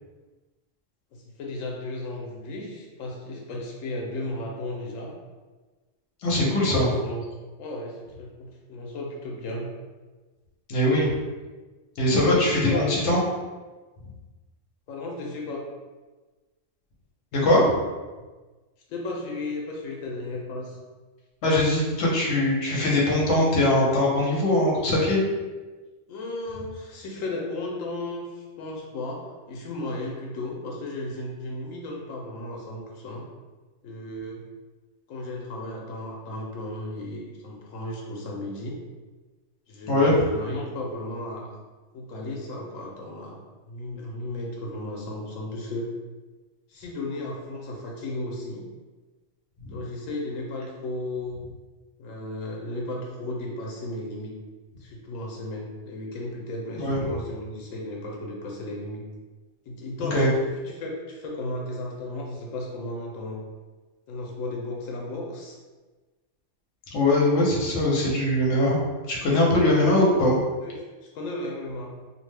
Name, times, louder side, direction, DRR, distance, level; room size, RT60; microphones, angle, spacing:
voice 1, 1.1-5.1 6.3-7.2 7.6-9.7 12.1-12.9 14.9-15.6 18.9-20.8 26.1-33.3 33.8-34.4 35.1-38.8 39.7-41.5 41.9-45.9 46.7-48.6 49.7-51.4 52.0-54.4 54.8-59.0 59.7-60.3 60.8-63.4 64.1-65.6 70.6-70.8 71.0-72.0, left 2 dB, 90° left, -1 dB, 1.0 m, -34 dB
voice 2, 6.2-6.9 10.7-11.2 12.0-13.2 17.3-17.7 21.4-25.2 39.9-40.1 49.6-49.8 56.8-57.0 60.0-60.3 66.9-68.8 69.1-70.4, left 1 dB, 65° left, -3 dB, 1.0 m, -21 dB
2.6 x 2.1 x 3.2 m, 1.3 s
omnidirectional pair, 1.3 m